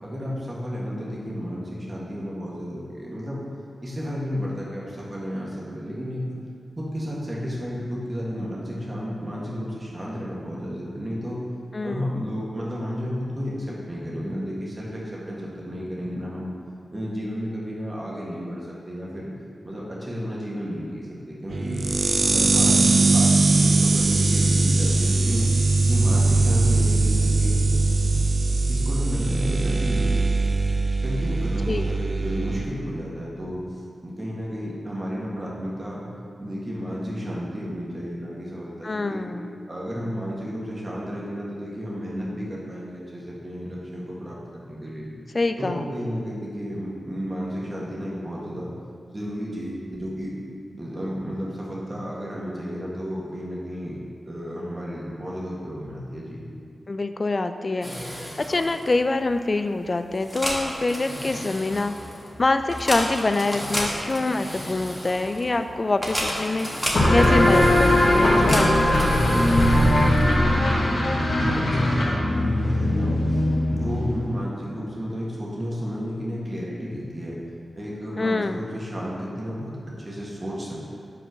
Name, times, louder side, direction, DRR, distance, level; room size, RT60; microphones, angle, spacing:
voice 1, 0.0-3.4 3.8-6.4 6.8-11.4 11.8-16.5 16.9-19.3 19.6-21.8 22.2-25.5 25.9-27.6 28.7-30.1 31.0-36.1 36.4-39.3 39.7-45.1 45.6-48.7 49.1-50.4 50.8-54.0 54.2-56.4 71.2-73.4 73.7-77.4 77.8-79.7 80.0-80.9, equal, 30° right, -5 dB, 1.7 m, -32 dB
voice 2, 11.7-12.1 22.3-22.6 31.7-31.9 38.8-39.7 45.3-45.9 56.9-57.9 58.4-62.0 62.4-66.7 67.1-69.9 78.2-78.6, left 2 dB, 40° left, 9 dB, 0.3 m, -25 dB
sound 1, 21.5-32.7, right 3 dB, 60° right, 0.4 m, -21 dB
sound 2, 57.8-70.5, equal, 5° left, 1.4 m, -33 dB
sound 3, 66.9-74.3, left 1 dB, 70° left, 1.4 m, -20 dB
5.5 x 4.4 x 6.2 m, 2.3 s
wide cardioid pair, 70°, 0 cm